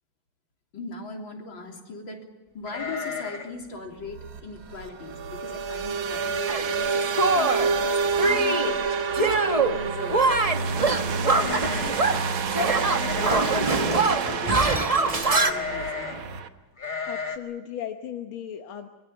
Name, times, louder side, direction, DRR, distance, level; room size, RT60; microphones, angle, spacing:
voice 1, 0.7-2.2 2.5-10.3 10.5-12.0 12.4-16.3, left 3 dB, 70° left, 1 dB, 4.1 m, -39 dB
sound 1, 2.7-3.6 3.9-4.0 4.4-4.7 5.3-5.4 5.7-6.2 6.5-6.6 7.7-7.8 8.1-8.5 11.2-12.2 12.8-13.7 15.2-16.2 16.8-17.4, left 5 dB, 25° left, 2.0 m, -34 dB
sound 2, 4.1-16.5, right 5 dB, 80° right, 2.0 m, -28 dB
Shatter, 6.5-6.7 7.2-7.7 8.2-8.7 9.1-9.8 10.1-12.3 12.5-15.5, right 3 dB, 20° right, 1.1 m, -23 dB
voice 2, 17.1-18.9, left 10 dB, 90° left, 5 dB, 2.0 m, -36 dB
25.0 x 22.5 x 7.0 m, 1.2 s
omnidirectional pair, 2.2 m